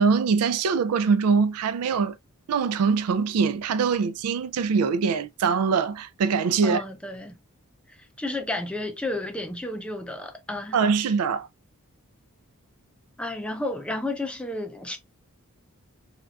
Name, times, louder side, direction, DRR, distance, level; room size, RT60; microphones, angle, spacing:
voice 1, 0.0-2.2 2.5-6.8 10.7-11.5, right 5 dB, 90° right, 0.4 m, -23 dB
voice 2, 6.6-7.4 8.2-10.8 13.2-15.0, left 2 dB, 5° left, 0.4 m, -32 dB
3.5 x 2.3 x 2.3 m
head